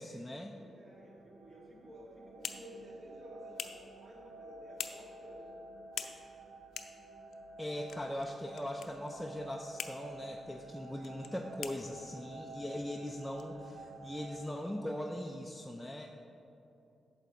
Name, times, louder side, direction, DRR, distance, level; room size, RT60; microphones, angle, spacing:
voice 1, 0.0-0.6 7.6-16.1, left 1 dB, 5° left, 1 dB, 0.4 m, -40 dB
voice 2, 0.6-5.5, right 1 dB, 45° right, -4 dB, 2.1 m, -53 dB
sound 1, 0.9-14.4, right 2 dB, 65° right, 1.0 m, -51 dB
sound 2, 1.9-14.3, left 7 dB, 80° left, 0.5 m, -49 dB
8.8 x 7.2 x 4.0 m, 2.9 s
wide cardioid pair, 130°, 0 cm